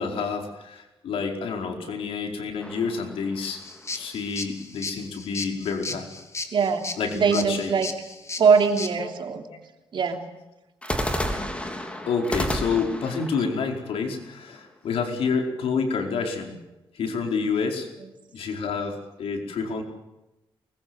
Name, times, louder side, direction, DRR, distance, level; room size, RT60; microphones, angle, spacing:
voice 1, 0.0-3.6 3.9-6.1 7.0-7.7 9.0-9.1 9.5-9.6 12.0-16.6 16.9-17.9 18.3-19.8, left 5 dB, 85° left, 3 dB, 4.8 m, -28 dB
sound 1, 2.6-4.0 10.8-14.8, equal, 10° left, 3.8 m, -32 dB
sound 2, 3.5-8.9, left 3 dB, 30° left, 2.8 m, -36 dB
voice 2, 6.5-6.9 7.1-7.9 8.4-9.4 9.9-10.2, right 6 dB, 60° right, 4 dB, 3.2 m, -21 dB
24.0 x 21.5 x 8.0 m, 0.99 s
cardioid pair, 110°, 9 cm